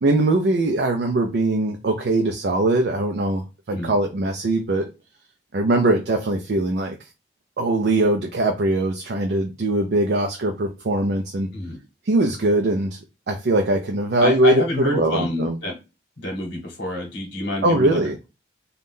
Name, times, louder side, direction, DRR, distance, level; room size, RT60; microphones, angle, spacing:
voice 1, 0.0-4.9 5.5-7.0 7.6-11.5 12.1-13.0 13.3-15.6 17.6-18.2, right 2 dB, 60° right, 0.4 m, -21 dB
voice 2, 14.2-15.7 16.2-18.2, left 1 dB, 70° left, 1.0 m, -27 dB
2.6 x 2.3 x 3.5 m
head